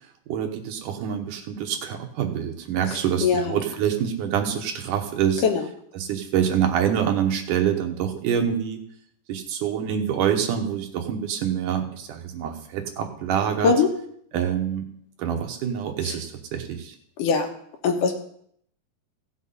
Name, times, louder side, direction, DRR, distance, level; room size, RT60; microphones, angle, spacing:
voice 1, 0.3-5.4 5.9-8.8 9.3-13.7 14.3-14.9 15.2-17.0, right 8 dB, 85° right, 4 dB, 2.8 m, -26 dB
voice 2, 3.2-3.6 5.4-5.6 13.6-13.9 16.0-16.2 17.2-17.5 17.8-18.1, left 5 dB, 85° left, 3 dB, 2.9 m, -21 dB
16.0 x 7.3 x 4.1 m, 0.66 s
omnidirectional pair, 3.6 m